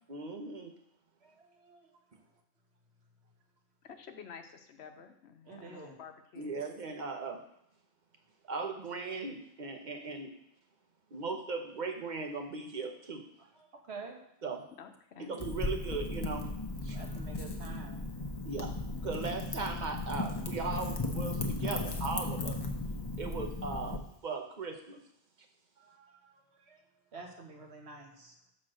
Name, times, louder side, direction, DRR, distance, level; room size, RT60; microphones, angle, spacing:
voice 1, 0.1-0.7 6.4-7.4 8.5-10.4 11.1-13.3 14.4-14.7 15.2-16.5 16.8-17.0 18.4-22.6 23.2-25.0, right 4 dB, 50° right, 4 dB, 1.0 m, -38 dB
voice 2, 1.2-2.0 5.4-6.0 13.4-14.4 16.9-18.1 21.7-21.9 25.8-28.4, right 4 dB, 85° right, 1 dB, 1.5 m, -50 dB
voice 3, 3.8-6.6 14.8-15.3, left 6 dB, 90° left, 7 dB, 1.0 m, -50 dB
Wind / Fire, 15.4-24.0, left 2 dB, 25° left, 0.8 m, -36 dB
6.2 x 4.1 x 6.3 m, 0.77 s
omnidirectional pair, 1.1 m